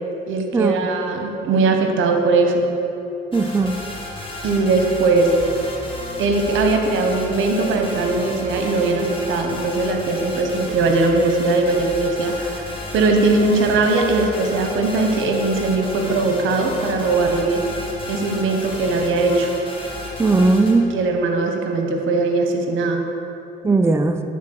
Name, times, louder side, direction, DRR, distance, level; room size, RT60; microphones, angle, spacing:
voice 1, 0.3-2.7 4.4-5.3 6.2-17.6 18.1-19.5 20.9-23.0, right 3 dB, 80° right, 3 dB, 1.0 m, -20 dB
sound 1, 3.3-20.7, left 1 dB, 25° left, 1.6 m, -33 dB
voice 2, 3.3-3.8 20.2-20.9 23.6-24.2, right 3 dB, 15° right, 7 dB, 0.4 m, -17 dB
8.4 x 4.1 x 6.3 m, 3.0 s
cardioid pair, 90°, 20 cm